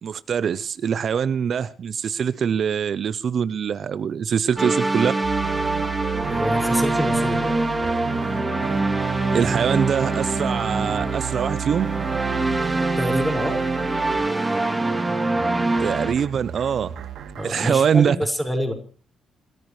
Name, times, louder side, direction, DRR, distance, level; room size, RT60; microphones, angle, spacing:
voice 1, 0.0-5.1 9.3-11.9 15.8-17.0 17.4-18.2, right 7 dB, 55° right, 0.7 m, -23 dB
sound 1, 4.6-16.1, right 2 dB, 15° right, 2.7 m, -24 dB
sound 2, 5.2-17.7, right 8 dB, 70° right, 2.8 m, -33 dB
voice 2, 6.3-7.6 13.0-13.6 17.4-18.7, equal, 5° left, 5.6 m, -26 dB
28.0 x 13.5 x 3.2 m
cardioid pair, 90°, 0 cm